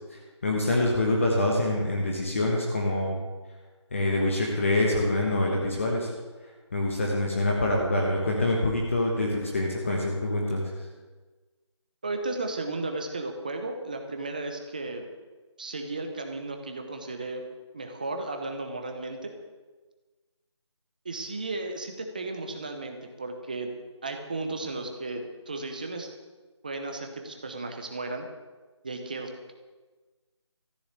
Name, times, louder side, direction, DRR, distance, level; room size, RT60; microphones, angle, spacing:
voice 1, 0.1-3.2 3.9-6.1 6.7-10.6, left 1 dB, 25° left, -1 dB, 1.3 m, -25 dB
voice 2, 12.0-15.0 15.6-17.4 17.7-19.3 21.0-23.7 24.0-26.1 26.6-28.3 28.8-29.5, right 2 dB, 15° right, 4 dB, 0.8 m, -34 dB
14.0 x 6.9 x 8.3 m, 1.3 s
figure-of-eight pair, 175°, 15 cm